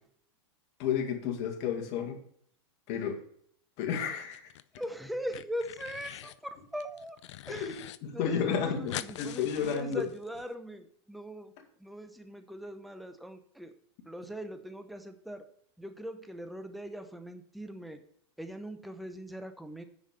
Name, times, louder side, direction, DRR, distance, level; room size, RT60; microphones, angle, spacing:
voice 1, 0.8-2.2 2.9-3.2 3.8-4.4 7.5-7.7 8.0-10.1, left 7 dB, 45° left, 3 dB, 2.1 m, -31 dB
sound 1, 4.2-4.9 5.1-6.4 6.8-8.0 8.2-8.3 8.5-10.4, left 13 dB, 75° left, 0.5 m, -44 dB
voice 2, 4.8-7.2 7.5-7.7 8.1-11.5 11.8-13.7 14.1-15.4 15.8-18.0 18.4-19.8, equal, ahead, 8 dB, 0.7 m, -40 dB
9.5 x 5.2 x 6.6 m, 0.64 s
supercardioid pair, 135°, 15 cm